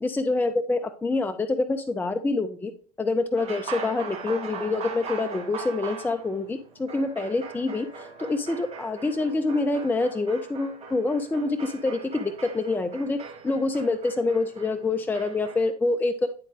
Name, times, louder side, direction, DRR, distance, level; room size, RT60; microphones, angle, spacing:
voice 1, 0.0-2.7 3.0-13.2 13.4-16.3, left 3 dB, 10° left, 8 dB, 0.5 m, -26 dB
sound 1, 3.4-15.7, right 5 dB, 30° right, 1.7 m, -40 dB
9.8 x 3.8 x 3.4 m, 0.39 s
figure-of-eight pair, 75°, 20 cm